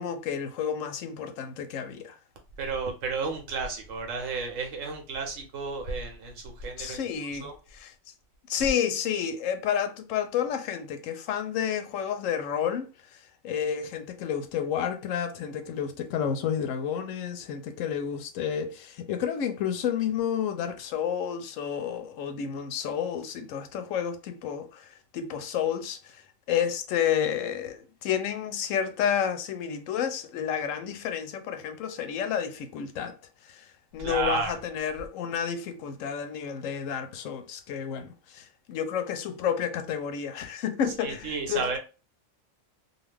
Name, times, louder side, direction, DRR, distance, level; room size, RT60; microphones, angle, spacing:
voice 1, 0.0-2.2 6.8-7.9 8.5-12.9 13.4-26.2 26.5-33.2 33.5-33.6 33.9-41.7, left 8 dB, 85° left, 0.9 m, -30 dB
voice 2, 2.6-7.0 7.3-7.5 34.0-34.5 41.0-41.8, right 4 dB, 85° right, 1.2 m, -32 dB
2.6 x 2.4 x 3.3 m
omnidirectional pair, 1.3 m